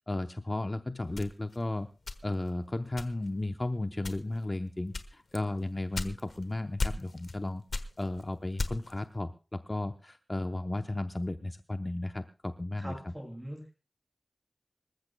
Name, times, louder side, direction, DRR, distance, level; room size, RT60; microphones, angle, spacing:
voice 1, 0.1-1.9 2.2-7.6 8.0-12.9, left 2 dB, 35° left, 7 dB, 0.7 m, -34 dB
sound 1, 1.1-2.5 3.0-3.4 4.0-4.4 4.9-6.4 6.8-7.4 7.7-9.0, left 3 dB, 85° left, 1.2 m, -36 dB
voice 2, 12.8-13.7, equal, 10° right, 2 dB, 7.1 m, -42 dB
26.5 x 14.5 x 2.2 m, 0.33 s
wide cardioid pair, 65°, 0 cm